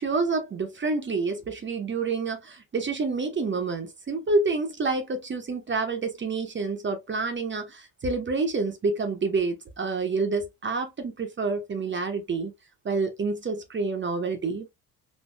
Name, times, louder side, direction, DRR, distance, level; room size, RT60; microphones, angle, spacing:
voice 1, 0.0-12.5 12.8-14.7, right 3 dB, 25° right, 0.8 m, -28 dB
4.4 x 2.9 x 2.2 m
figure-of-eight pair, 50°, 47 cm